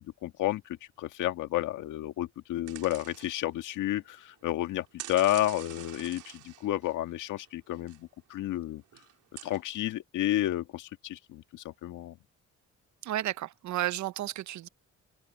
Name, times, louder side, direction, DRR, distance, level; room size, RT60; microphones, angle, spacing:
voice 1, 0.0-8.8 9.4-12.2, left 14 dB, 85° left, 1.7 m, -31 dB
sound 1, 2.7-3.8 4.1-4.5 5.0-8.0 8.4-8.5 8.9-9.6, right 13 dB, 85° right, 4.1 m, -46 dB
voice 2, 13.0-14.7, right 14 dB, 70° right, 0.7 m, -32 dB
cardioid pair, 90°, 30 cm